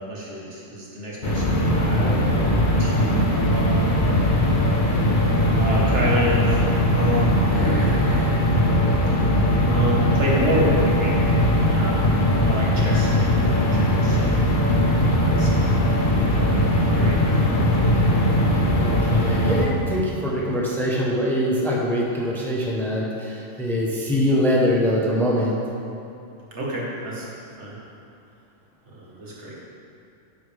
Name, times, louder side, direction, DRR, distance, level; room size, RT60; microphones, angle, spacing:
voice 1, 0.1-4.0 5.6-6.7 6.9-8.3 9.6-12.1 12.4-14.4 15.1-15.8 16.3-17.4 26.5-27.3 27.6-27.7 29.0-29.5, equal, 65° right, -5 dB, 2.0 m, -29 dB
sound 1, 1.2-19.7, left 1 dB, 45° left, 1.3 m, -20 dB
voice 2, 18.7-25.6, equal, ahead, -4 dB, 1.0 m, -23 dB
10.5 x 7.9 x 3.5 m, 2.6 s
omnidirectional pair, 1.3 m